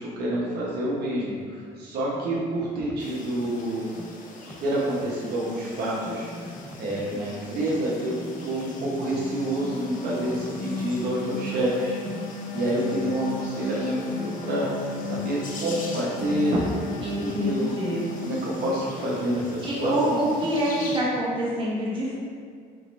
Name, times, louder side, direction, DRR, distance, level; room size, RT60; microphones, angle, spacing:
voice 1, 0.0-3.9 4.4-8.1 8.4-12.0 12.5-16.6 17.0-17.8 18.2-20.2, right 1 dB, 70° right, -6 dB, 0.9 m, -28 dB
sound 1, 2.1-3.1 3.4-5.2 5.5-7.3 7.6-9.3 9.6-11.2 11.6-13.2 13.6-17.6 17.9-21.2, equal, ahead, 0.3 m, -43 dB
sound 2, 3.0-21.0, left 3 dB, 50° left, 0.7 m, -44 dB
sound 3, 8.9-19.3, left 4 dB, 90° left, 0.4 m, -36 dB
voice 2, 17.0-18.1 19.6-22.2, right 1 dB, 30° right, -6 dB, 1.3 m, -26 dB
4.8 x 3.0 x 3.1 m, 2.1 s
cardioid pair, 110°, 17 cm